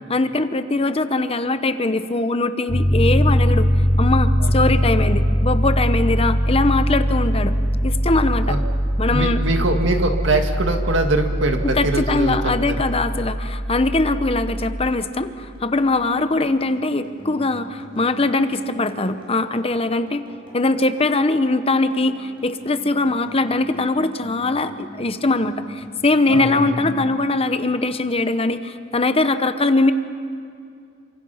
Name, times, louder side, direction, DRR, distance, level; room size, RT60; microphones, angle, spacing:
voice 1, 0.1-3.7 4.0-7.5 7.8-8.6 9.0-9.4 11.6-20.2 20.5-29.9, left 2 dB, 30° left, 10 dB, 0.9 m, -21 dB
Piano, 2.7-14.9, equal, 5° left, 4.2 m, -21 dB
voice 2, 4.4-4.8 8.5-8.6 9.1-12.4 12.7-12.8 26.3-26.6, right 2 dB, 70° right, 4 dB, 2.1 m, -22 dB
sound 1, 14.2-27.9, equal, 30° right, 6.4 m, -43 dB
28.5 x 25.5 x 5.7 m, 2.4 s
head